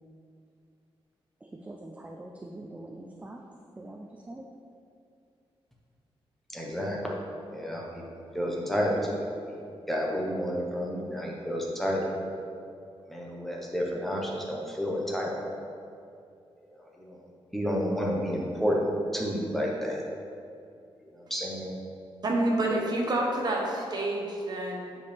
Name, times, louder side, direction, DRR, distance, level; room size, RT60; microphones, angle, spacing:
voice 1, 1.4-3.4 3.8-4.4, right 1 dB, 15° right, 1 dB, 0.4 m, -44 dB
voice 2, 6.5-7.1 7.5-8.0 8.3-9.6 9.9-12.1 13.1-15.4 16.6-20.0 21.0-21.7, equal, ahead, -3 dB, 1.0 m, -30 dB
voice 3, 22.2-25.0, right 1 dB, 45° right, -1 dB, 1.1 m, -28 dB
9.2 x 5.1 x 3.4 m, 2.5 s
wide cardioid pair, 165°, 10 cm